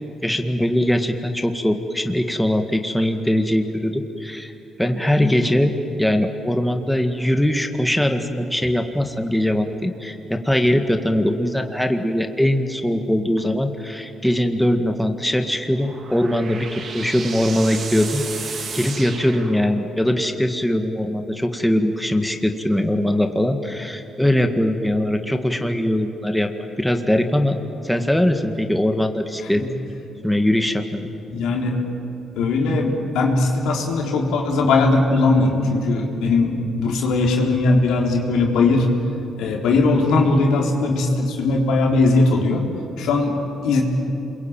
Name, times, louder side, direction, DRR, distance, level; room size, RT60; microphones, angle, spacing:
voice 1, 0.2-4.5 4.8-26.5 26.8-27.6 27.8-29.6 30.2-31.1, left 1 dB, 5° left, 5 dB, 1.9 m, -21 dB
sound 1, 15.5-20.1, right 5 dB, 55° right, 2.9 m, -34 dB
voice 2, 31.3-31.8 32.4-38.9 39.4-42.6 43.0-43.8, left 3 dB, 85° left, 0 dB, 4.0 m, -19 dB
28.0 x 23.0 x 9.0 m, 2.9 s
cardioid pair, 90°, 0 cm